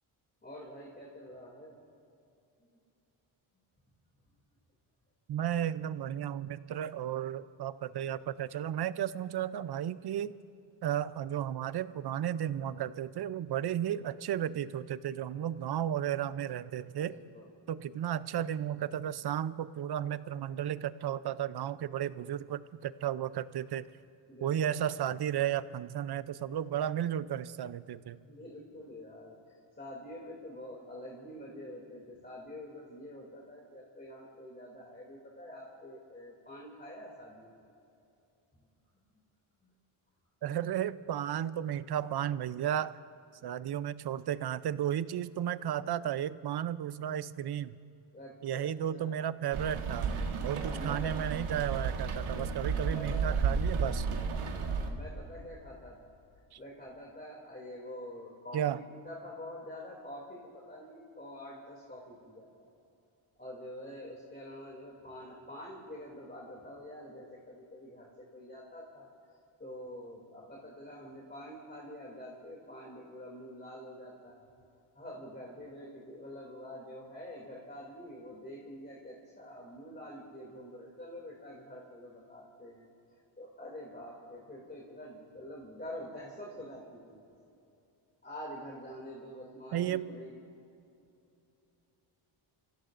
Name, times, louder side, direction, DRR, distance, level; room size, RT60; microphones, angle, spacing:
voice 1, 0.4-1.8 2.6-2.7 13.9-14.1 17.0-17.5 24.3-24.8 28.2-37.6 39.6-39.7 48.1-49.2 50.7-51.1 52.3-53.4 54.4-56.2 56.6-62.6 63.4-69.1 69.6-74.4 74.9-82.9 83.4-87.2 88.2-90.4, left 1 dB, 20° left, -4 dB, 2.7 m, -47 dB
voice 2, 5.3-10.4 10.8-17.2 17.7-23.9 24.4-28.2 40.4-43.0 43.4-47.8 48.4-50.1 50.4-54.1 56.5-56.6 58.5-58.8 89.7-90.1, right 10 dB, 55° right, 16 dB, 0.6 m, -34 dB
Rain, 49.5-54.9, right 5 dB, 85° right, 1.6 m, -32 dB
28.0 x 16.0 x 2.6 m, 2.7 s
cardioid pair, 90°, 49 cm